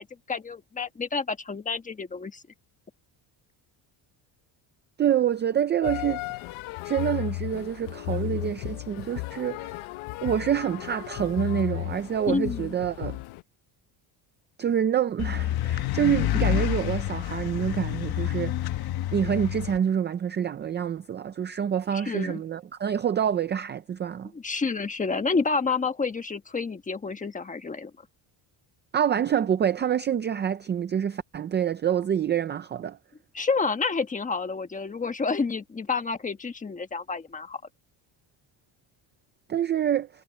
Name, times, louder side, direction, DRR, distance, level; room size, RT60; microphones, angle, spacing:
voice 1, 0.0-2.4 12.3-12.7 21.9-22.4 24.3-27.9 33.3-37.6, left 4 dB, 15° left, 1.2 m, -29 dB
voice 2, 5.0-6.2 6.8-9.8 10.2-13.2 14.6-18.5 19.1-24.3 28.9-33.0 39.5-40.1, right 9 dB, 25° right, 0.4 m, -27 dB
sound 1, 5.8-13.4, left 20 dB, 80° left, 0.8 m, -34 dB
sound 2, 15.2-19.8, left 13 dB, 50° left, 1.0 m, -28 dB
cardioid pair, 170°, 48 cm